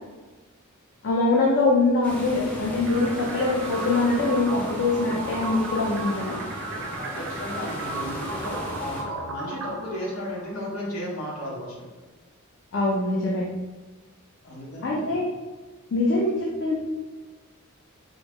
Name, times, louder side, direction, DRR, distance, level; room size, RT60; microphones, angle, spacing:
voice 1, 1.0-6.4 12.7-13.5 14.8-15.3 15.9-16.8, left 3 dB, 55° left, -3 dB, 0.5 m, -23 dB
sound 1, 2.0-9.0, left 1 dB, 5° left, 0.5 m, -37 dB
sound 2, 2.9-10.8, right 3 dB, 60° right, 0.4 m, -35 dB
voice 2, 7.0-11.9 14.4-15.2, left 1 dB, 90° left, -4 dB, 0.9 m, -34 dB
3.7 x 2.0 x 3.4 m, 1.2 s
head